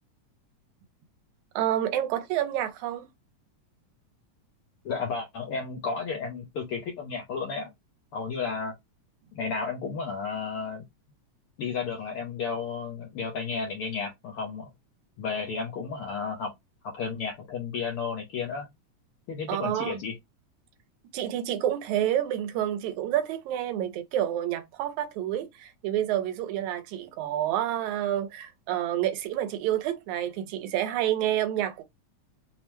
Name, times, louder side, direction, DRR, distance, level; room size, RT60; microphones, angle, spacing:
voice 1, 1.6-3.1 19.5-20.0 21.1-31.8, right 11 dB, 90° right, 2.0 m, -28 dB
voice 2, 4.8-7.7 8.1-8.7 9.3-10.8 11.6-14.7 15.2-16.5 16.9-18.7 19.3-20.1, left 5 dB, 80° left, 1.2 m, -32 dB
5.4 x 2.1 x 3.0 m
omnidirectional pair, 3.4 m